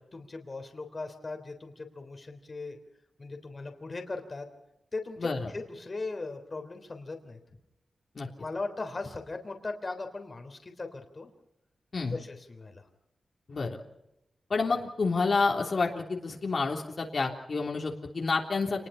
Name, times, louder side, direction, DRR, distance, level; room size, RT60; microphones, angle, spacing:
voice 1, 0.1-2.8 3.2-4.5 4.9-7.4 8.4-11.3 12.1-12.9, left 3 dB, 35° left, 5 dB, 3.5 m, -38 dB
voice 2, 5.2-5.5 8.1-8.3 11.9-12.2 13.5-13.8 14.5-18.9, left 4 dB, 50° left, 0 dB, 3.4 m, -29 dB
28.0 x 20.5 x 5.7 m, 0.87 s
wide cardioid pair, 100°, 0 cm